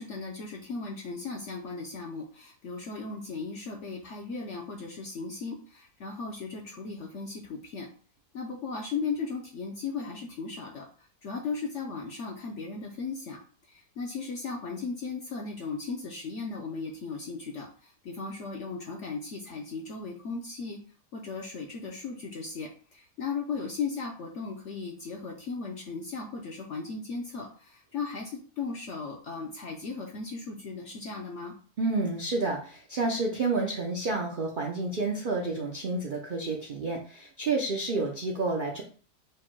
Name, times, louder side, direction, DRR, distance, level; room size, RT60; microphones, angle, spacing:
voice 1, 0.0-7.9 8.3-20.8 21.1-31.5, left 4 dB, 65° left, 1 dB, 0.7 m, -37 dB
voice 2, 31.8-38.8, right 3 dB, 80° right, 0 dB, 0.4 m, -30 dB
4.7 x 2.1 x 4.5 m, 0.42 s
omnidirectional pair, 1.8 m